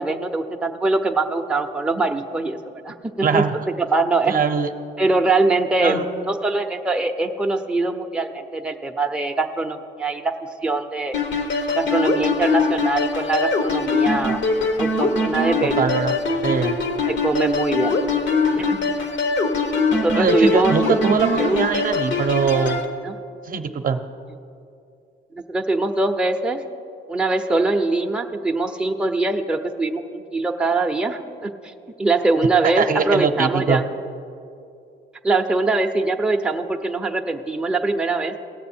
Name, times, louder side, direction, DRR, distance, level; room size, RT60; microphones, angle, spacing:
voice 1, 0.0-2.6 2.8-3.4 3.8-4.3 5.0-10.3 10.6-11.1 11.7-14.4 14.8-15.9 16.6-16.7 17.1-18.0 18.5-18.8 19.9-20.8 21.4-21.6 23.0-23.1 25.5-26.6 27.1-31.5 32.0-33.8 35.2-38.3, right 3 dB, 5° right, 3 dB, 0.6 m, -22 dB
voice 2, 3.2-3.5 4.3-4.7 5.8-6.0 15.8-16.2 16.4-16.8 20.1-22.8 23.5-24.0 32.8-33.8, right 5 dB, 45° right, 7 dB, 0.6 m, -21 dB
sound 1, 11.1-22.8, left 3 dB, 70° left, 1.1 m, -22 dB
17.0 x 6.7 x 4.3 m, 2.5 s
cardioid pair, 90°, 20 cm